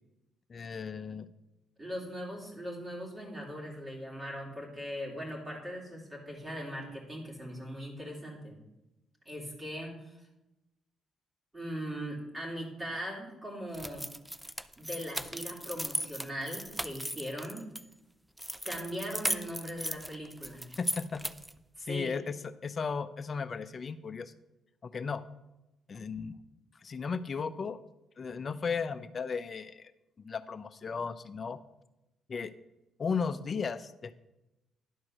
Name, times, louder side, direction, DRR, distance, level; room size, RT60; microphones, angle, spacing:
voice 1, 0.5-1.3 20.8-21.2 21.8-24.3 24.8-25.2 25.9-26.4 26.8-27.8 28.2-29.9 30.2-31.6 32.3-32.5 33.0-34.1, left 5 dB, 40° left, 13 dB, 0.6 m, -35 dB
voice 2, 1.8-8.6 9.2-10.2 11.5-14.1 14.8-17.7 18.6-20.7 21.8-22.1, equal, 20° right, -2 dB, 3.1 m, -40 dB
sound 1, 13.7-17.8 18.4-21.6, equal, 5° right, 0.4 m, -37 dB
11.0 x 4.6 x 6.4 m, 0.94 s
cardioid pair, 90°, 0 cm